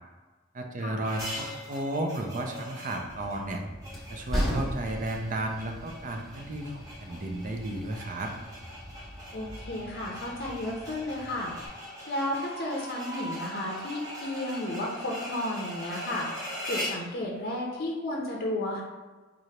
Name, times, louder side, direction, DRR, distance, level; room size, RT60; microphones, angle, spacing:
voice 1, 0.5-3.6 4.1-8.3, right 1 dB, 40° right, 3 dB, 0.5 m, -33 dB
sound 1, 1.0-17.1, equal, 20° right, 0.9 m, -41 dB
Train, 3.1-11.7, equal, ahead, 1.1 m, -38 dB
voice 2, 9.3-11.5 12.1-18.8, left 1 dB, 50° left, -2 dB, 0.6 m, -33 dB
Screaming, 12.3-15.2, right 2 dB, 85° right, 1.2 m, -44 dB
3.9 x 3.2 x 2.8 m, 1.3 s
head